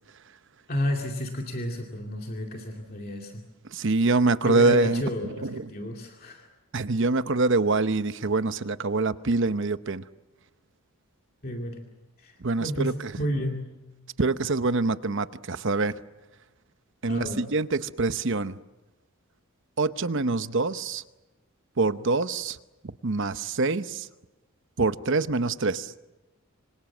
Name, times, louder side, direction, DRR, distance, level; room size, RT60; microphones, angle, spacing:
voice 1, 0.7-3.4 4.4-6.5 11.4-11.8 12.2-13.7 17.1-17.4, left 1 dB, 45° left, 2.4 m, -32 dB
voice 2, 3.7-5.7 6.7-10.1 12.4-13.1 14.2-15.9 17.0-18.6 19.8-21.0 21.8-22.6 23.0-24.1 24.8-25.9, right 3 dB, 60° right, 0.9 m, -25 dB
26.0 x 26.0 x 7.3 m
head